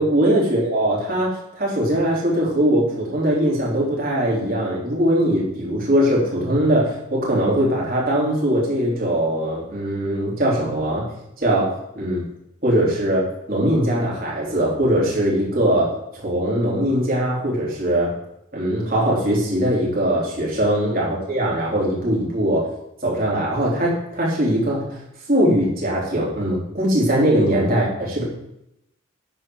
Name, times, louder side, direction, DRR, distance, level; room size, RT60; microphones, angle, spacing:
voice 1, 0.0-11.1 11.4-12.2 12.6-15.9 16.2-18.1 18.5-22.7 23.0-25.0 25.3-28.2, right 1 dB, 45° right, -5 dB, 3.7 m, -21 dB
10.5 x 4.6 x 7.8 m, 0.82 s
head